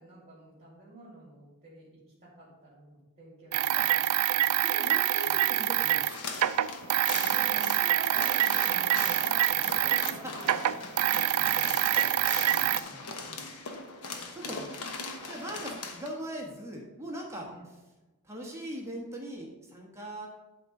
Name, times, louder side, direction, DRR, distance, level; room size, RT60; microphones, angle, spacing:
voice 1, 0.0-4.6 5.2-5.4 7.2-11.7 12.4-13.5 14.4-14.9 15.1-15.4 17.4-17.6, right 1 dB, 30° right, -7 dB, 2.4 m, -49 dB
sound 1, 3.5-10.2 10.4-12.8, right 12 dB, 75° right, 0.4 m, -26 dB
voice 2, 4.6-6.0 9.6-9.9 11.1-12.4 12.9-13.1 14.3-14.6 15.2-17.5 18.2-20.3, equal, 15° right, -2 dB, 1.3 m, -41 dB
sound 2, 6.1-16.1, left 3 dB, 85° left, 1.1 m, -40 dB
11.5 x 3.8 x 5.3 m, 1.1 s
head